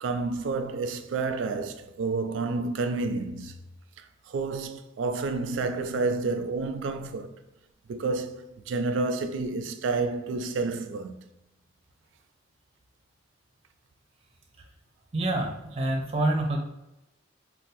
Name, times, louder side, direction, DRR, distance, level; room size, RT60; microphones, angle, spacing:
voice 1, 0.0-3.6 4.0-7.3 7.9-11.2, right 3 dB, 80° right, 0.3 m, -30 dB
voice 2, 15.1-16.6, right 2 dB, 30° right, 0.6 m, -27 dB
2.6 x 2.3 x 3.9 m
head